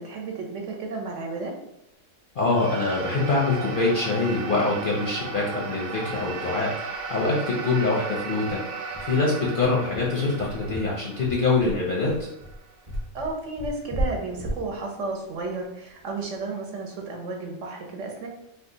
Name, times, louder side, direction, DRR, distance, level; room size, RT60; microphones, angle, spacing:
voice 1, 0.0-1.5 13.1-18.3, right 3 dB, 65° right, 1 dB, 1.0 m, -33 dB
voice 2, 2.4-8.6 9.0-12.1, left 3 dB, 55° left, -4 dB, 0.6 m, -24 dB
sound 1, 2.5-13.0, right 5 dB, 90° right, 1.0 m, -36 dB
sound 2, 6.9-7.0 7.4-7.5 8.0-16.4, right 1 dB, 30° right, 0.6 m, -35 dB
2.8 x 2.3 x 3.7 m, 0.82 s
omnidirectional pair, 1.4 m